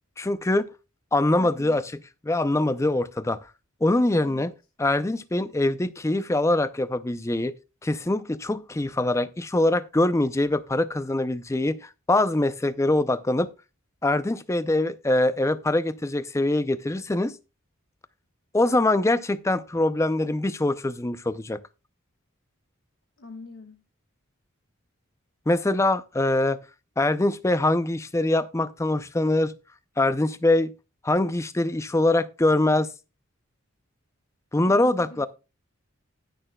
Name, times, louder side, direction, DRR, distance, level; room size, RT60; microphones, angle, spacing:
voice 1, 0.2-0.7 1.1-3.4 3.8-4.5 4.8-7.5 7.8-13.5 14.0-17.4 18.5-21.6 25.5-26.6 27.0-29.5 30.0-30.7 31.0-32.9 34.5-35.3, left 2 dB, 15° left, 0.4 m, -23 dB
voice 2, 23.2-23.8 34.7-35.3, left 3 dB, 65° left, 1.3 m, -43 dB
19.5 x 6.6 x 2.2 m
head